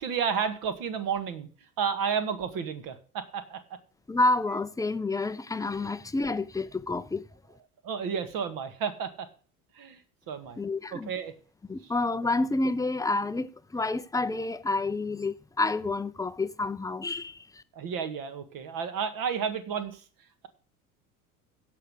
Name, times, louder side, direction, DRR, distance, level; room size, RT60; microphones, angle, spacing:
voice 1, 0.0-1.5 1.8-3.8 5.8-5.9 7.8-9.3 9.8-10.0 10.3-10.6 10.9-11.3 11.8-11.9 17.7-20.0, right 7 dB, 50° right, 1.9 m, -32 dB
voice 2, 4.1-7.2 10.6-11.1 11.7-17.6, left 2 dB, 10° left, 0.6 m, -29 dB
16.5 x 5.8 x 5.0 m
figure-of-eight pair, 65°, 44 cm